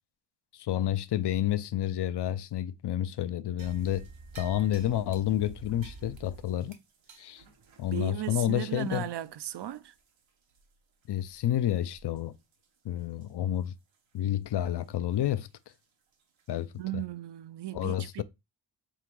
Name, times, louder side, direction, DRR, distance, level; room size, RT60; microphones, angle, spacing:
voice 1, 0.5-4.1 4.4-6.8 7.2-7.4 7.8-9.0 11.1-12.4 12.8-13.8 14.1-15.5 16.5-17.0 17.7-18.2, left 11 dB, 65° left, 0.5 m, -30 dB
herreria casera, 3.6-10.2 10.5-10.6 11.2-11.4 11.9-12.2 12.5-12.6 13.2-13.3 15.7-15.8 16.4-16.5, right 4 dB, 85° right, 1.0 m, -50 dB
voice 2, 7.9-9.9 16.8-18.2, right 13 dB, 65° right, 0.5 m, -36 dB
3.7 x 2.9 x 4.6 m
cardioid pair, 50°, 45 cm